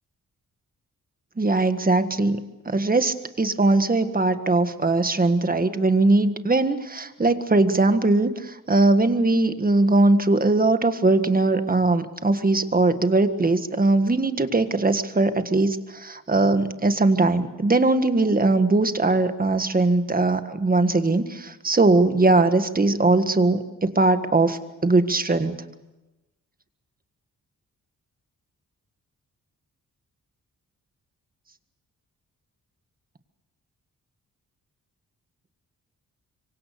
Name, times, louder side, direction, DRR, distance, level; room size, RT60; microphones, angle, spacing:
voice 1, 1.4-25.6, right 2 dB, 25° right, 9 dB, 1.7 m, -20 dB
26.0 x 24.0 x 6.8 m, 1.1 s
cardioid pair, 90°, 34 cm